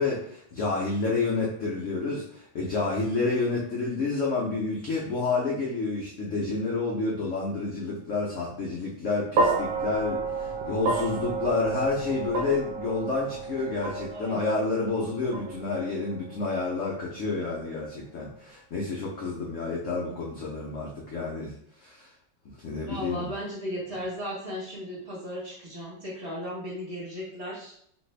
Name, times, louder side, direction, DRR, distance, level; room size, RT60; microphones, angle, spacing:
voice 1, 0.0-22.1 22.6-23.3, left 3 dB, 80° left, -4 dB, 0.6 m, -29 dB
sound 1, 9.4-17.7, right 3 dB, 70° right, 1.2 m, -31 dB
voice 2, 22.8-27.7, equal, 40° right, -6 dB, 1.2 m, -36 dB
3.1 x 2.6 x 3.2 m, 0.69 s
omnidirectional pair, 2.1 m